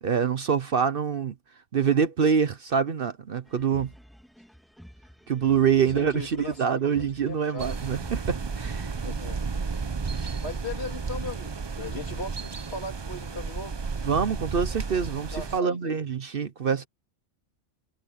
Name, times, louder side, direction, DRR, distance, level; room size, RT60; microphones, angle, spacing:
voice 1, 0.0-1.3 1.7-3.9 5.3-8.9 10.1-10.4 14.0-16.9, right 7 dB, 55° right, 0.9 m, -25 dB
sound 1, 3.5-9.4, equal, ahead, 1.8 m, -50 dB
voice 2, 5.9-6.7 7.3-7.8 9.0-9.5 10.4-13.8 15.1-16.0, left 2 dB, 55° left, 3.2 m, -38 dB
sound 2, 7.6-15.6, right 5 dB, 35° right, 0.4 m, -33 dB
omnidirectional pair, 1.3 m